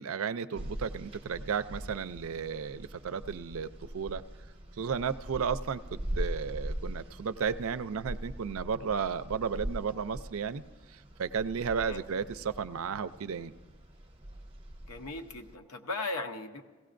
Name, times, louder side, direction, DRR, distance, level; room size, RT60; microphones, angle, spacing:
voice 1, 0.0-4.2 4.8-10.6 10.9-13.5, right 6 dB, 70° right, 14 dB, 0.4 m, -34 dB
sound 1, 0.5-15.5, equal, 25° right, 0.8 m, -42 dB
voice 2, 14.9-16.6, left 2 dB, 80° left, 6 dB, 0.8 m, -37 dB
16.5 x 16.5 x 2.6 m, 1.4 s
head